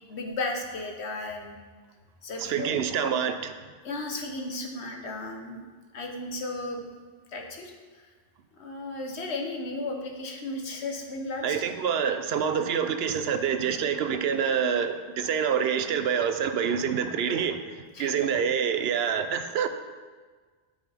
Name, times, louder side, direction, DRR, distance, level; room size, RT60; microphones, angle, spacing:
voice 1, 0.1-1.6 2.2-2.8 3.8-5.6 5.9-6.9 7.3-7.7 8.6-11.6 17.9-18.1, left 2 dB, 90° left, 2 dB, 1.3 m, -34 dB
voice 2, 2.4-3.6 11.4-19.7, right 7 dB, 75° right, 9 dB, 0.8 m, -27 dB
12.5 x 5.2 x 3.4 m, 1.5 s
omnidirectional pair, 1.1 m